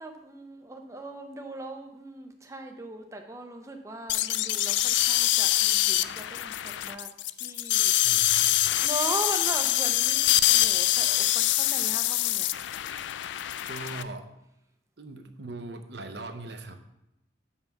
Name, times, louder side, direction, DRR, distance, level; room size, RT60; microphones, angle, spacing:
voice 1, 0.0-7.1 7.3-7.9 8.8-12.5, right 2 dB, 15° right, 4 dB, 0.6 m, -39 dB
sound 1, 4.1-14.0, left 15 dB, 70° left, 0.3 m, -25 dB
voice 2, 8.0-8.6 13.7-14.3 15.0-16.8, right 2 dB, 60° right, 7 dB, 0.7 m, -40 dB
5.9 x 5.6 x 6.9 m, 0.87 s
head